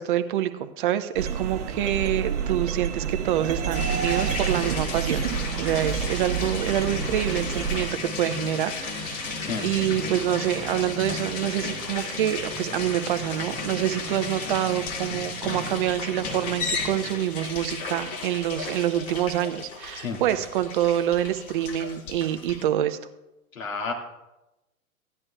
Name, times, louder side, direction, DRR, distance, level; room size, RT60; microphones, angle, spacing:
voice 1, 0.0-5.2 5.6-23.0, right 12 dB, 35° right, 10 dB, 0.7 m, -26 dB
sound 1, 1.1-7.9, right 7 dB, 55° right, 1.1 m, -29 dB
sound 2, 3.7-22.6, left 4 dB, 40° left, 2.1 m, -34 dB
voice 2, 9.4-9.7 20.0-20.2 23.5-23.9, left 4 dB, 70° left, 1 dB, 2.1 m, -31 dB
15.5 x 10.5 x 2.3 m, 0.98 s
figure-of-eight pair, 110°, 43 cm